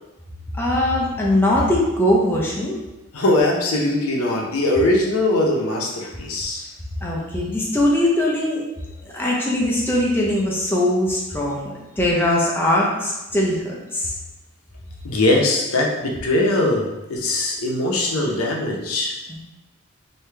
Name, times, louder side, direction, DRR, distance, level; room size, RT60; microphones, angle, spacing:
voice 1, 0.5-2.8 7.0-8.6 9.1-14.1 19.3-19.4, left 1 dB, 10° left, -4 dB, 0.5 m, -21 dB
voice 2, 3.1-6.6 15.0-19.1, left 2 dB, 85° left, -1 dB, 0.7 m, -21 dB
3.2 x 2.7 x 3.3 m, 1.0 s
head